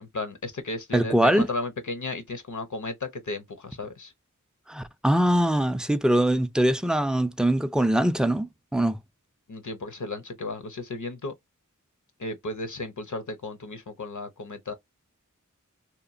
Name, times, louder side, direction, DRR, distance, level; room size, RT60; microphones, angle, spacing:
voice 1, 0.0-4.1 9.5-11.3 12.2-14.7, left 2 dB, 65° left, 0.6 m, -34 dB
voice 2, 0.9-1.4 4.7-9.0, right 1 dB, ahead, 0.3 m, -22 dB
2.9 x 2.1 x 2.4 m
wide cardioid pair, 45°, 32 cm